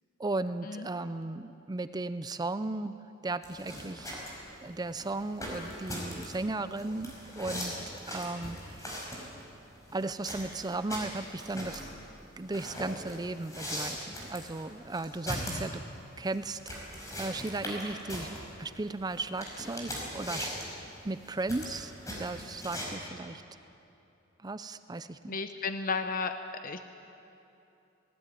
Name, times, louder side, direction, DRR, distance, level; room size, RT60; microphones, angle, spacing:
voice 1, 0.2-2.9 3.2-4.2 4.6-7.8 8.1-9.3 9.9-11.8 12.4-15.8 16.2-16.9 17.2-20.5 21.0-21.9 22.2-23.4 24.4-25.4, right 2 dB, 20° right, 12 dB, 0.5 m, -36 dB
sound 1, 3.4-22.9, equal, 15° left, 5.3 m, -40 dB
voice 2, 25.3-26.3 26.6-26.8, left 4 dB, 45° left, 8 dB, 0.8 m, -33 dB
19.0 x 18.5 x 9.3 m, 2.8 s
head